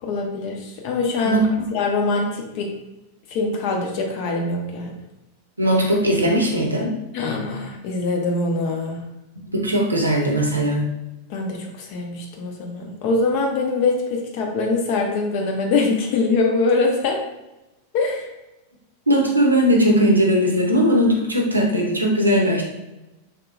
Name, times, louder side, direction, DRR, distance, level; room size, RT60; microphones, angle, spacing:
voice 1, 0.0-1.4 1.7-2.7 3.3-4.9 7.1-9.0 11.3-17.2 17.9-18.3, left 3 dB, 45° left, 2 dB, 0.6 m, -23 dB
voice 2, 1.2-1.7 5.6-6.9 9.5-10.9 19.1-22.6, equal, 80° right, 0 dB, 0.6 m, -19 dB
3.5 x 2.8 x 2.4 m, 0.97 s
figure-of-eight pair, 90°, 0 cm